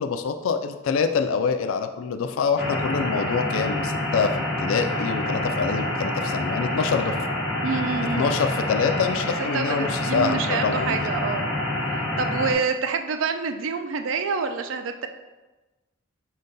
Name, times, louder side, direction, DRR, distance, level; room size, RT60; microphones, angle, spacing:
voice 1, 0.0-4.3 4.6-7.2 8.1-11.1, left 5 dB, 80° left, 8 dB, 0.3 m, -25 dB
sound 1, 2.6-12.5, left 1 dB, 5° right, 0.8 m, -27 dB
voice 2, 7.6-8.3 9.4-11.5 12.2-15.1, right 5 dB, 70° right, 7 dB, 0.4 m, -27 dB
5.1 x 2.2 x 3.9 m, 1.1 s
head